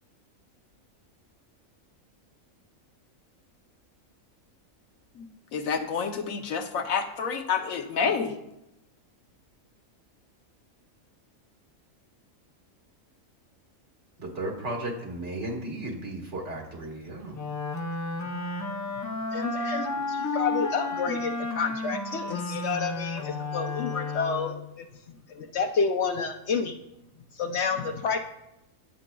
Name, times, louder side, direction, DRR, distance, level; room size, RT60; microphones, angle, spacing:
voice 1, 5.5-8.3 22.3-22.5, left 6 dB, 85° left, 5 dB, 1.2 m, -29 dB
voice 2, 14.2-17.4, right 1 dB, 60° right, 0 dB, 1.7 m, -35 dB
Wind instrument woodwind instrument, 17.3-24.7, left 2 dB, 30° left, 0.3 m, -32 dB
voice 3, 19.3-24.9 25.3-26.7 27.4-28.2, left 5 dB, 65° left, 5 dB, 0.8 m, -29 dB
15.0 x 6.0 x 2.3 m, 0.87 s
omnidirectional pair, 1.4 m